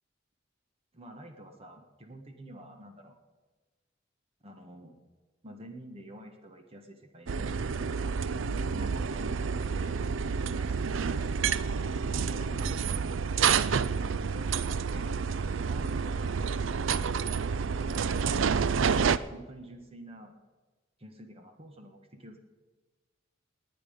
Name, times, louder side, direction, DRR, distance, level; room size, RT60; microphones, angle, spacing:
voice 1, 0.9-3.1 4.4-5.0 5.4-7.6 8.7-11.5 12.2-15.2 15.6-16.5 18.9-20.3 21.0-22.4, equal, 30° right, 5 dB, 1.4 m, -48 dB
sound 1, 7.3-19.2, right 6 dB, 80° right, 0.5 m, -29 dB
19.5 x 9.2 x 5.2 m, 1.3 s
head